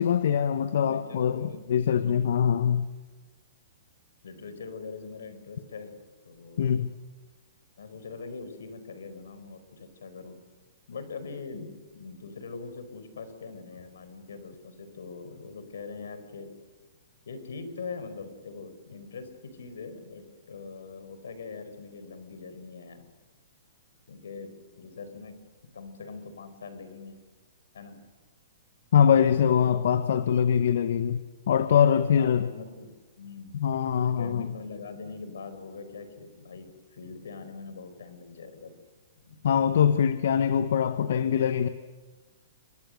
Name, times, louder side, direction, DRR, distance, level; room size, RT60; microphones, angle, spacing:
voice 1, 0.0-2.9 6.6-6.9 28.9-32.5 33.5-34.5 39.4-41.7, left 8 dB, 65° left, 11 dB, 1.1 m, -23 dB
voice 2, 0.7-1.6 2.0-2.3 4.2-5.9 6.2-6.8 7.8-10.4 10.9-16.5 17.2-23.1 24.1-25.3 25.7-27.2 27.7-28.0 29.1-29.9 31.7-33.6 34.0-38.7 39.2-39.4, left 4 dB, 85° left, 10 dB, 4.9 m, -42 dB
28.5 x 23.0 x 6.6 m, 1.3 s
hypercardioid pair, 155°, 0 cm